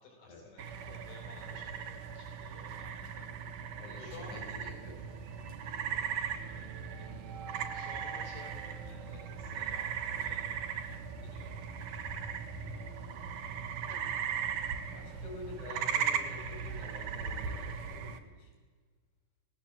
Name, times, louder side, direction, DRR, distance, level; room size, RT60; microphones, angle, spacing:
voice 1, 0.0-3.3 3.8-4.5 5.6-6.1 6.6-6.7 6.9-7.0 7.5-11.7, left 3 dB, 65° left, 1 dB, 6.3 m, -54 dB
sound 1, 0.6-18.2, right 7 dB, 80° right, 1.8 m, -38 dB
voice 2, 3.8-5.0 12.5-13.4 14.9-18.5, left 2 dB, 35° left, 0 dB, 6.6 m, -48 dB
sound 2, 3.9-14.8, right 5 dB, 55° right, 2.5 m, -50 dB
27.0 x 18.0 x 7.5 m, 1.5 s
omnidirectional pair, 5.9 m